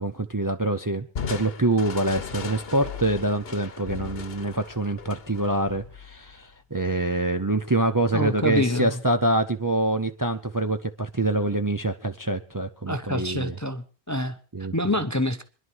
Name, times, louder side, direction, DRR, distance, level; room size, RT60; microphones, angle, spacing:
voice 1, 0.0-13.5 14.5-14.7, right 2 dB, 20° right, 7 dB, 0.7 m, -25 dB
Crushing, 1.2-6.5, left 6 dB, 65° left, 1.2 m, -37 dB
voice 2, 8.1-9.0 12.9-14.4 14.7-15.4, left 1 dB, 20° left, 10 dB, 0.7 m, -26 dB
26.0 x 11.0 x 4.6 m, 0.38 s
omnidirectional pair, 1.1 m